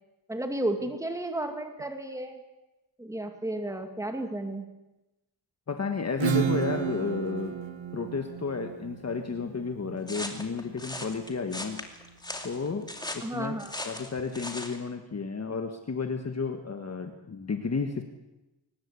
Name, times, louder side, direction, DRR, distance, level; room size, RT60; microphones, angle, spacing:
voice 1, 0.3-2.4 3.0-4.6 13.2-13.7, right 1 dB, 5° right, 5 dB, 2.3 m, -32 dB
voice 2, 5.7-7.5 7.9-11.9 12.4-13.6 13.8-18.0, left 5 dB, 35° left, 6 dB, 1.5 m, -32 dB
Acoustic guitar / Strum, 6.2-11.6, right 9 dB, 85° right, 1.7 m, -33 dB
sound 1, 10.1-14.8, left 1 dB, 10° left, 2.4 m, -38 dB
23.0 x 20.0 x 8.4 m, 1.0 s
wide cardioid pair, 165°, 45 cm